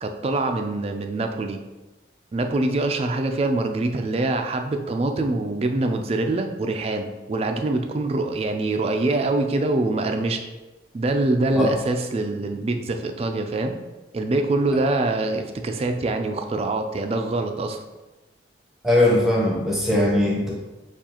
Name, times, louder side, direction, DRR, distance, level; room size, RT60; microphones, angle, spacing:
voice 1, 0.0-1.6 2.3-10.4 10.9-13.8 14.1-17.8, right 2 dB, 30° right, 5 dB, 0.3 m, -24 dB
voice 2, 18.8-20.5, left 1 dB, ahead, -4 dB, 0.8 m, -20 dB
6.9 x 2.4 x 2.9 m, 1.1 s
head